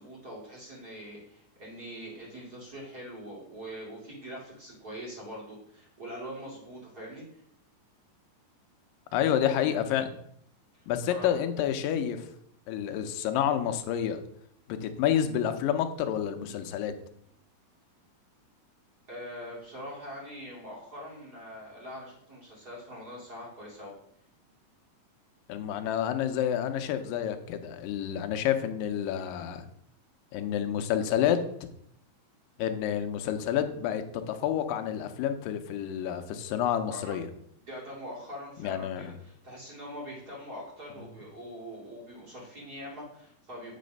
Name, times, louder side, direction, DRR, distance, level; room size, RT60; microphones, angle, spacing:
voice 1, 0.0-7.4 11.1-11.4 19.1-23.9 36.9-37.2 37.6-43.8, equal, 30° right, -5 dB, 2.3 m, -43 dB
voice 2, 9.1-10.1 10.9-12.3 12.7-14.2 14.7-16.9 25.5-29.7 30.3-31.7 32.6-37.3 38.6-39.1, left 9 dB, 80° left, 7 dB, 2.3 m, -29 dB
8.6 x 4.1 x 5.3 m, 0.69 s
omnidirectional pair, 4.1 m